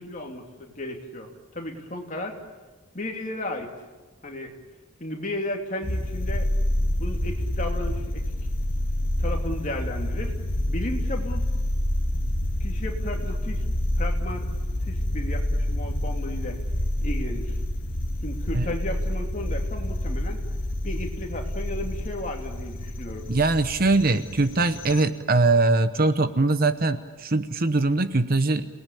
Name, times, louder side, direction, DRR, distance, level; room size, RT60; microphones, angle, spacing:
voice 1, 0.0-2.4 2.9-3.7 4.2-4.5 5.0-6.5 7.0-8.2 9.2-10.4 10.7-11.5 12.6-13.6 14.0-14.5 14.8-16.6 17.0-17.6 18.2-20.4 20.8-23.3, left 1 dB, 35° left, 2 dB, 2.9 m, -34 dB
sound 1, 5.8-25.0, left 1 dB, 55° left, 1.6 m, -28 dB
voice 2, 23.3-28.7, right 2 dB, 40° right, 11 dB, 0.9 m, -22 dB
28.5 x 19.0 x 8.6 m, 1.2 s
head